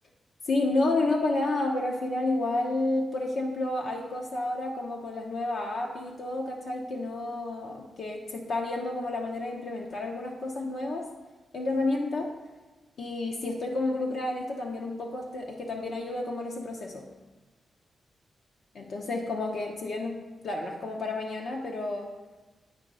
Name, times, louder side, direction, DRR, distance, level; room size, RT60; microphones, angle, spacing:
voice 1, 0.5-11.1 11.5-12.3 13.0-17.0 18.7-22.1, left 2 dB, 60° left, 0 dB, 0.6 m, -30 dB
9.0 x 3.0 x 5.4 m, 1.2 s
wide cardioid pair, 160°, 0 cm